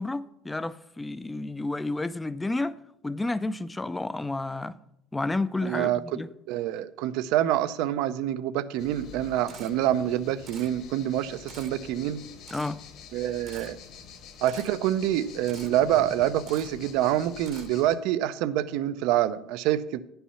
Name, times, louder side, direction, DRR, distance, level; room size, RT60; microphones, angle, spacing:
voice 1, 0.0-2.7 3.0-4.7 5.1-6.3 12.5-12.8, left 2 dB, 10° left, 0.3 m, -31 dB
voice 2, 5.6-6.2 6.5-12.2 13.1-13.8 14.4-20.0, right 12 dB, 75° right, 0.5 m, -26 dB
sound 1, 8.8-17.9, left 5 dB, 55° left, 1.2 m, -46 dB
Camera, 9.5-9.7 10.5-10.7 11.5-11.7 12.5-12.7 13.5-13.7 14.5-14.7 15.5-15.7 16.5-16.7 17.5-17.7, right 7 dB, 40° right, 0.9 m, -47 dB
9.9 x 5.6 x 5.6 m
cardioid pair, 135°, 0 cm